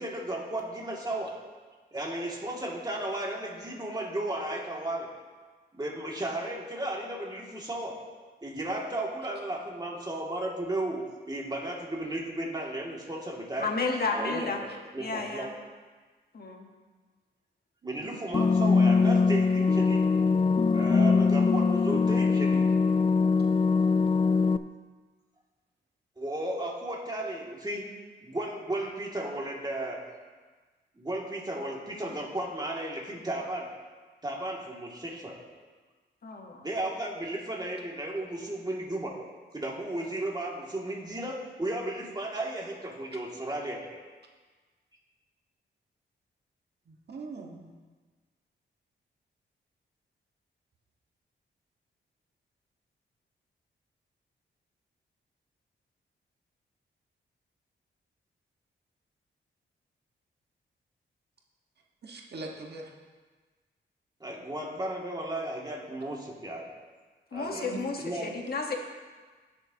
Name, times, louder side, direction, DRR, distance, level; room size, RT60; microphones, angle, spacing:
voice 1, 0.0-1.3 1.9-5.1 5.7-8.0 8.4-13.7 14.1-15.5 17.8-20.0 20.7-22.7 26.2-27.9 28.2-30.0 31.0-33.7 34.2-35.4 36.6-39.1 39.5-43.9 64.2-66.7 67.3-68.3, right 1 dB, 20° right, -3 dB, 2.4 m, -34 dB
voice 2, 13.6-14.6 15.0-15.5 16.3-16.7 36.2-36.7 67.3-68.8, left 3 dB, 55° left, 2 dB, 1.3 m, -32 dB
voice 3, 17.8-18.3 46.9-47.7 62.0-62.9 67.5-67.8, right 3 dB, 60° right, -1 dB, 1.5 m, -42 dB
sound 1, 18.3-24.6, left 4 dB, 25° left, 0.4 m, -22 dB
16.5 x 6.8 x 2.9 m, 1.4 s
cardioid pair, 75°, 20 cm